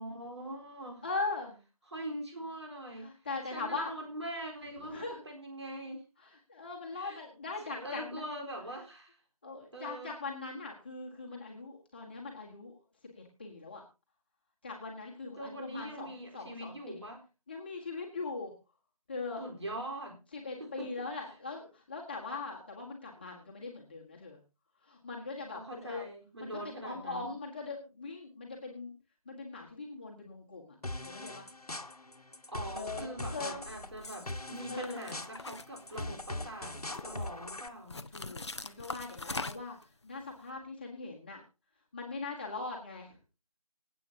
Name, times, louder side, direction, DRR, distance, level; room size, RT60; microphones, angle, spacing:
voice 1, 0.0-1.0 1.9-3.1 3.5-6.0 7.0-7.2 7.7-9.2 9.7-10.1 15.4-17.2 19.4-20.2 20.6-20.9 25.5-27.2 32.5-36.8 37.0-38.1, right 1 dB, 45° right, 1 dB, 4.1 m, -42 dB
voice 2, 1.0-1.6 3.0-3.9 4.8-5.2 6.2-8.2 9.4-12.8 13.1-13.8 14.6-17.0 17.5-18.5 19.1-19.4 20.3-24.4 24.8-26.1 26.4-28.9 29.2-31.5 32.7-33.6 34.7-35.1 38.1-41.4 41.9-43.2, left 3 dB, 15° left, -2 dB, 1.5 m, -41 dB
sound 1, 30.8-37.7, left 2 dB, 80° left, 1.4 m, -41 dB
sound 2, 34.0-34.3 34.8-36.3 36.7-37.3 37.9-39.8, left 3 dB, 45° left, 0.6 m, -41 dB
25.0 x 8.5 x 2.8 m, 0.30 s
figure-of-eight pair, 165°, 19 cm